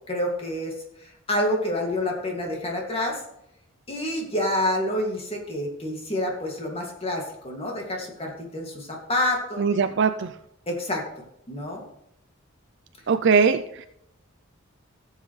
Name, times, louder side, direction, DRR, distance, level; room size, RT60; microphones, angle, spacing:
voice 1, 0.1-3.2 3.9-9.9 10.7-11.1 11.5-11.8, left 1 dB, 30° left, 0 dB, 2.3 m, -28 dB
voice 2, 9.6-10.3 13.1-13.9, right 5 dB, 60° right, 10 dB, 0.4 m, -21 dB
16.0 x 7.3 x 3.2 m, 0.79 s
head